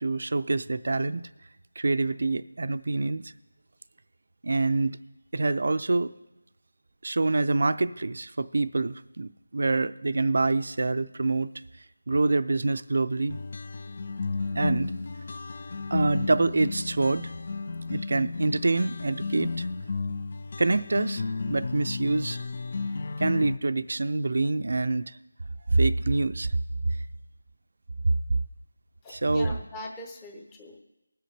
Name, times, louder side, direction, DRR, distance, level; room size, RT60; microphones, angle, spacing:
voice 1, 0.0-1.2 1.8-3.3 4.4-5.0 5.3-6.1 7.0-11.5 12.1-13.4 14.5-14.9 15.9-17.3 17.9-19.7 20.6-22.4 23.2-25.2 25.7-26.6 26.8-27.0 28.0-28.1 29.1-29.6, right 3 dB, 50° right, 13 dB, 0.5 m, -26 dB
sound 1, 13.3-23.6, left 3 dB, 40° left, 0.3 m, -33 dB
voice 2, 29.0-30.8, left 1 dB, 10° left, 1 dB, 0.8 m, -41 dB
20.5 x 7.8 x 3.3 m, 0.96 s
figure-of-eight pair, 175°, 0 cm